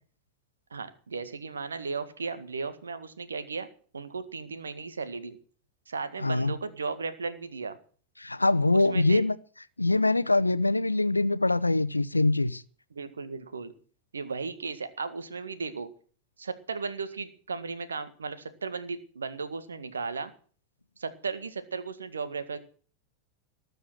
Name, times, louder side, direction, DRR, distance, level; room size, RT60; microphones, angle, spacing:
voice 1, 0.7-3.7 3.9-5.4 5.9-7.8 8.7-9.2 12.9-13.7 14.1-15.9 16.4-20.3 21.0-22.6, right 4 dB, 70° right, 11 dB, 1.8 m, -35 dB
voice 2, 6.2-6.5 8.2-9.3 9.8-12.6, left 2 dB, 85° left, 16 dB, 0.7 m, -24 dB
19.5 x 7.0 x 7.6 m, 0.42 s
figure-of-eight pair, 90°, 0 cm